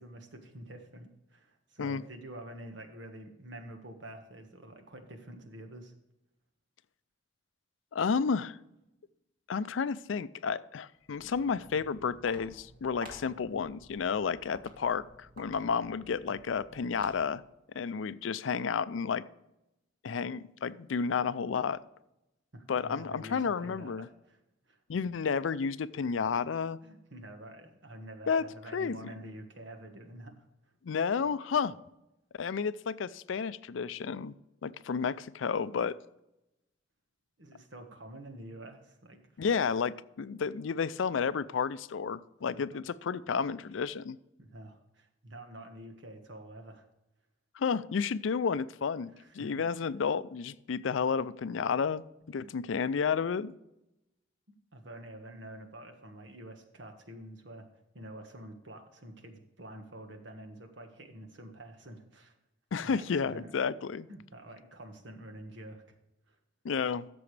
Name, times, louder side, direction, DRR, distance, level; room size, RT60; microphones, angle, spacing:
voice 1, 0.0-5.9 22.5-24.4 24.7-24.8 26.8-30.5 37.4-39.6 44.4-46.9 49.1-49.5 52.4-52.5 54.7-57.7 57.9-62.3 62.8-63.6 64.1-65.8 66.3-66.4, right 1 dB, 70° right, 5 dB, 1.5 m, -48 dB
voice 2, 7.9-8.6 9.5-17.4 17.7-19.2 20.0-21.8 22.7-24.1 24.9-26.8 28.3-28.4 28.7-29.0 30.8-31.7 32.3-34.3 34.6-36.0 39.4-44.2 47.6-53.5 62.7-64.1 66.6-67.1, left 6 dB, 90° left, 16 dB, 0.4 m, -31 dB
Walk footsteps, 11.0-17.5, right 1 dB, 50° right, 2.3 m, -53 dB
13.5 x 6.9 x 3.3 m, 0.88 s
head